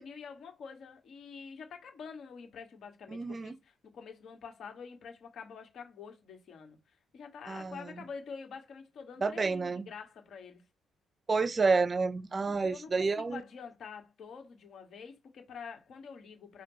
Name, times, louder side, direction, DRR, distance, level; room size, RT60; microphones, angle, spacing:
voice 1, 0.0-6.8 7.1-10.6 12.6-16.6, left 6 dB, 65° left, 1.8 m, -47 dB
voice 2, 3.1-3.5 7.5-8.0 9.2-9.9 11.3-13.4, right 4 dB, 30° right, 0.5 m, -29 dB
4.4 x 2.6 x 4.0 m
cardioid pair, 90°, 0 cm